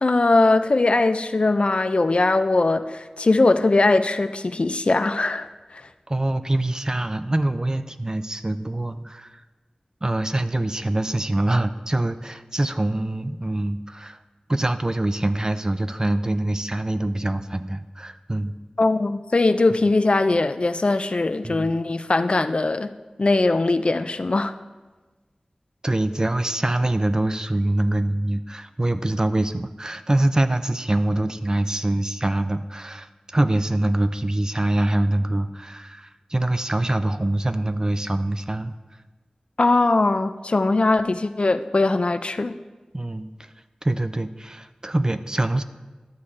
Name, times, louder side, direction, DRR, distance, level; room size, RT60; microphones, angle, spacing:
voice 1, 0.0-5.5 5.7-5.8 18.8-22.9 23.2-24.5 39.6-42.5, left 2 dB, 55° left, 10 dB, 0.4 m, -20 dB
voice 2, 6.1-9.4 10.0-14.2 14.5-18.5 21.4-21.7 25.8-38.7 42.9-43.5 43.8-45.6, right 1 dB, 30° right, 10 dB, 0.5 m, -24 dB
11.5 x 7.0 x 3.3 m, 1.3 s
wide cardioid pair, 45°, 2 cm